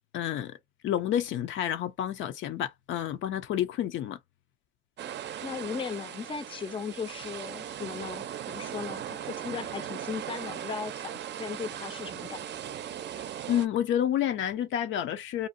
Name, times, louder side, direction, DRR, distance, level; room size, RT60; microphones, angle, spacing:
voice 1, 0.1-0.5 0.8-4.2 13.5-15.5, left 10 dB, 80° left, 0.5 m, -29 dB
sound 1, 5.0-13.7, right 10 dB, 60° right, 0.5 m, -38 dB
voice 2, 5.4-12.5, left 6 dB, 25° left, 0.4 m, -37 dB
2.6 x 2.1 x 2.5 m
cardioid pair, 90°, 20 cm